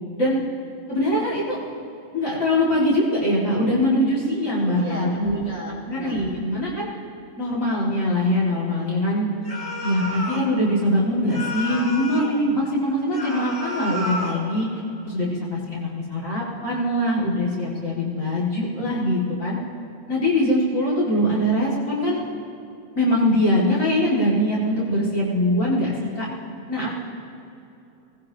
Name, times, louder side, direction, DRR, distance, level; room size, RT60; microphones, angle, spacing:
voice 1, 0.9-1.7 2.1-5.4 5.9-6.9 7.4-9.3 9.8-14.7 15.0-19.6 20.1-22.2 23.0-26.3 26.7-27.0, left 1 dB, 65° left, -7 dB, 2.9 m, -22 dB
voice 2, 4.8-6.3, left 2 dB, 35° left, -6 dB, 3.8 m, -35 dB
sound 1, 9.4-10.5 11.3-12.4 13.1-14.5, left 1 dB, 50° left, 3.3 m, -31 dB
24.5 x 18.5 x 2.9 m, 2.8 s
omnidirectional pair, 1.4 m